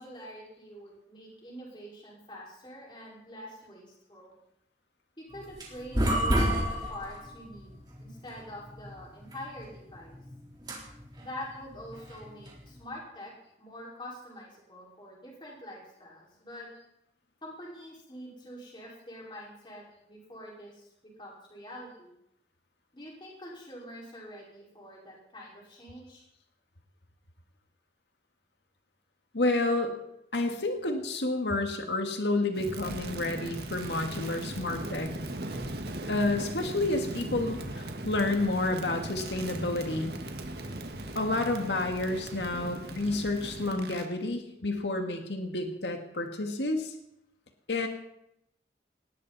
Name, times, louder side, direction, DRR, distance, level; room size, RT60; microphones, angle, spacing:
voice 1, 0.0-4.3 5.2-10.2 11.2-13.3 13.6-16.7 17.4-20.9 21.2-22.1 22.9-26.2, equal, 25° left, -3 dB, 5.1 m, -45 dB
sound 1, 5.3-12.8, equal, 25° right, 3.7 m, -32 dB
voice 2, 29.3-29.9 30.3-35.1 36.1-40.1 41.2-46.9 47.7-47.9, left 2 dB, 85° left, 4 dB, 1.9 m, -30 dB
Crackle, 32.5-44.1, right 1 dB, 65° right, 1.7 m, -38 dB
19.5 x 17.0 x 4.2 m, 0.80 s
head